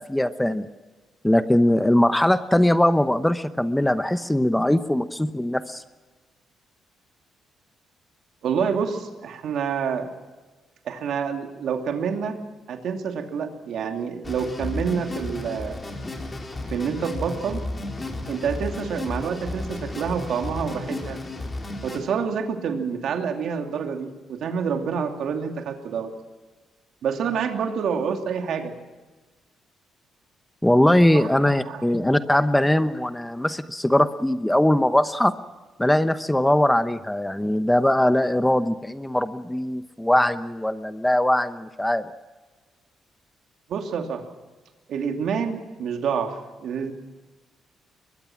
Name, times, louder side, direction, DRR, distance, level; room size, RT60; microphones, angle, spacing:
voice 1, 0.1-0.7 1.2-5.8 30.6-35.3 35.8-42.1, left 1 dB, 5° left, 11 dB, 0.9 m, -21 dB
voice 2, 8.4-10.1 10.8-12.4 12.7-15.8 16.7-17.7 18.3-21.2 21.8-26.1 27.0-28.7 31.1-31.9 43.7-44.3 44.9-46.9, right 6 dB, 70° right, 5 dB, 2.7 m, -28 dB
sound 1, 14.2-22.0, left 2 dB, 25° left, 4.2 m, -33 dB
22.5 x 21.0 x 6.1 m, 1.3 s
cardioid pair, 90°, 0 cm